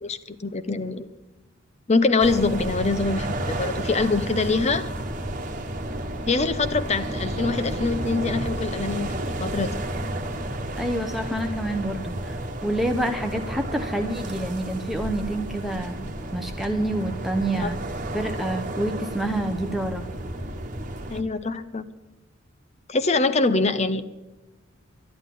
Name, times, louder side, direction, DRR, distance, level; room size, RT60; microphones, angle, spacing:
voice 1, 0.0-1.1 1.9-4.8 6.3-9.1 9.4-9.7 17.6-17.7 21.1-21.8 22.9-24.1, left 3 dB, 35° left, 12 dB, 0.7 m, -24 dB
sound 1, 2.2-21.2, right 1 dB, 40° right, 1.3 m, -32 dB
voice 2, 10.8-17.8 18.1-20.0, right 1 dB, ahead, 5 dB, 0.8 m, -28 dB
12.0 x 11.5 x 7.7 m, 1.1 s
head